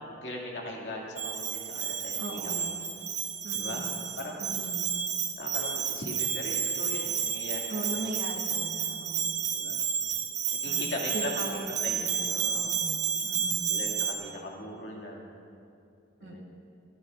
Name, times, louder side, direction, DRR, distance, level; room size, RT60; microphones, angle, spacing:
voice 1, 0.1-2.7 3.6-3.8 4.2-4.5 5.4-8.1 9.5-9.8 10.5-12.0 12.3-12.6 13.7-15.3 16.2-16.4, left 1 dB, 70° left, -2 dB, 2.4 m, -39 dB
Bell, 1.2-14.1, right 7 dB, 40° right, 1.1 m, -31 dB
voice 2, 2.2-2.8 3.4-4.0 4.4-4.9 7.7-9.4 10.6-11.6 11.9-13.8 16.2-16.4, right 1 dB, 85° right, 0 dB, 1.7 m, -39 dB
21.0 x 14.5 x 2.6 m, 2.5 s
head